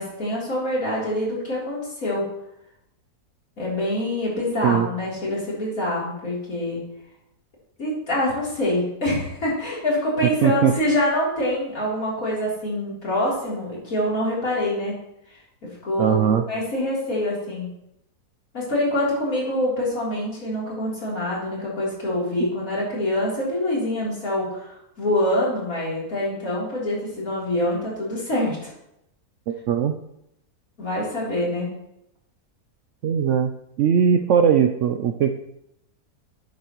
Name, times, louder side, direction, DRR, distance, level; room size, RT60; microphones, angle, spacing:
voice 1, 0.0-2.3 3.6-6.8 7.8-15.0 15.6-16.2 16.5-17.7 18.5-28.7 30.8-31.7, left 1 dB, 60° left, -6 dB, 3.8 m, -25 dB
voice 2, 10.4-10.7 16.0-16.4 29.5-29.9 33.0-33.5 33.8-35.3, right 8 dB, 70° right, 6 dB, 0.7 m, -19 dB
11.5 x 8.4 x 3.0 m, 0.81 s
omnidirectional pair, 1.7 m